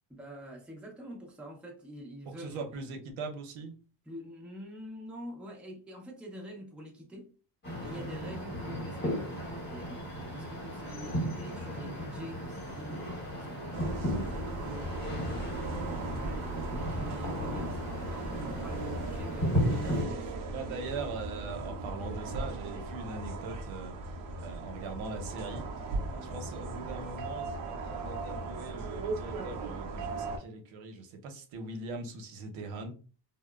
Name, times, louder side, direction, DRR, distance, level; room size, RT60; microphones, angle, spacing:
voice 1, 0.1-2.9 4.0-7.4 7.8-15.0 15.3-20.3 26.1-26.5, equal, ahead, 0.5 m, -46 dB
voice 2, 2.4-3.7 7.8-8.0 9.7-9.9 20.5-25.6 26.3-32.9, right 3 dB, 80° right, 0.8 m, -41 dB
sound 1, 7.6-20.0, equal, 25° left, 1.0 m, -35 dB
sound 2, 13.7-30.4, right 2 dB, 45° right, 0.6 m, -38 dB
2.8 x 2.0 x 2.2 m
cardioid pair, 135°, 46 cm